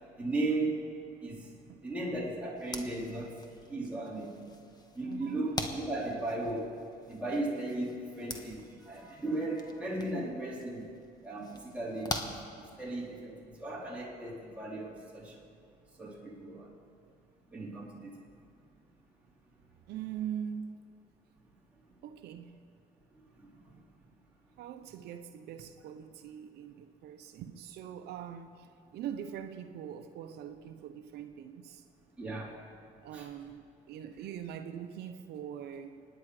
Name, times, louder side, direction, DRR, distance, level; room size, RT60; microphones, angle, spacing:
voice 1, 0.2-0.8 1.2-1.5 1.8-4.5 4.9-10.8 11.2-15.4 15.9-16.7 17.5-18.2 23.4-23.8 32.2-32.6 33.1-33.3, right 2 dB, 10° right, -6 dB, 3.7 m, -36 dB
sound 1, 2.6-13.2, left 2 dB, 25° left, 1.4 m, -44 dB
voice 2, 5.0-5.5 19.9-20.8 22.0-22.6 24.6-28.7 28.9-31.8 33.0-36.1, right 9 dB, 75° right, 8 dB, 0.9 m, -42 dB
25.0 x 10.0 x 5.0 m, 2.4 s
cardioid pair, 110°, 17 cm